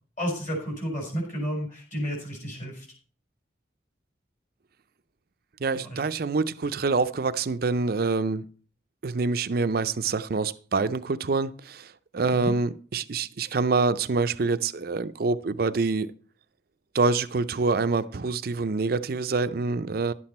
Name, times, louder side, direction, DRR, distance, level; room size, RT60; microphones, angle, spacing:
voice 1, 0.2-2.9 5.7-6.1 12.3-12.5, equal, 40° left, 4.3 m, -32 dB
voice 2, 5.6-8.4 9.0-11.9 12.1-16.1 16.9-20.1, right 4 dB, 50° right, 0.5 m, -26 dB
11.5 x 7.9 x 4.2 m
head